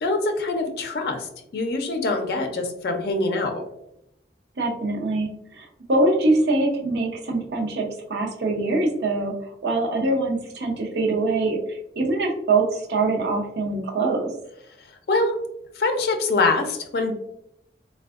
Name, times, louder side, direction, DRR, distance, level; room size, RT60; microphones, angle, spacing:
voice 1, 0.0-3.6 15.1-15.4 15.8-17.1, left 3 dB, 65° left, 4 dB, 0.4 m, -24 dB
voice 2, 4.6-14.3, right 2 dB, 75° right, 0 dB, 0.6 m, -24 dB
3.4 x 2.2 x 2.3 m, 0.79 s
head